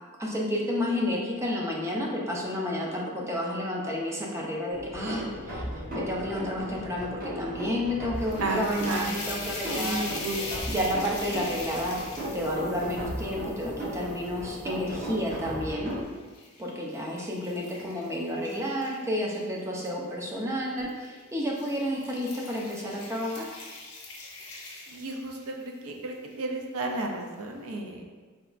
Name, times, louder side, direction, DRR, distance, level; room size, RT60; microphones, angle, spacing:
voice 1, 0.2-5.6 5.9-10.2 10.7-12.0 12.3-15.9 16.6-23.5, left 1 dB, 15° right, -3 dB, 0.4 m, -31 dB
sound 1, 4.7-16.0, equal, 40° right, 0.9 m, -36 dB
sound 2, 8.1-15.4 15.9-19.9 20.8-21.1 21.4-25.6, left 3 dB, 75° left, 0.7 m, -41 dB
voice 2, 8.4-9.1 9.7-10.4 10.7-10.8 17.7-18.0 24.9-28.1, right 2 dB, 80° right, 2 dB, 0.5 m, -33 dB
3.9 x 2.2 x 2.4 m, 1.4 s
head